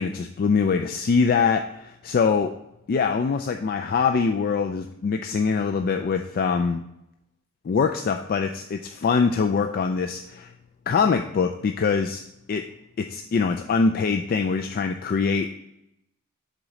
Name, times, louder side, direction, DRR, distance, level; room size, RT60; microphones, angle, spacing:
voice 1, 0.0-2.5 2.9-6.8 7.6-10.5 10.9-12.2 12.5-12.6 13.0-15.5, left 5 dB, 40° left, 6 dB, 0.3 m, -23 dB
7.3 x 4.0 x 4.8 m, 0.83 s
head